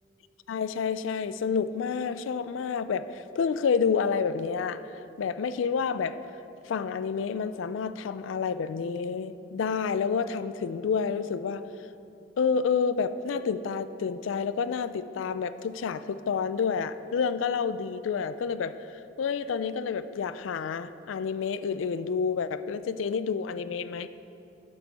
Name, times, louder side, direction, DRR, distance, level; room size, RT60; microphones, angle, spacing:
voice 1, 0.5-4.8 5.2-6.2 6.7-11.6 12.4-18.8 19.2-24.1, left 6 dB, 90° left, 13 dB, 0.4 m, -29 dB
10.0 x 7.0 x 4.2 m, 2.9 s
head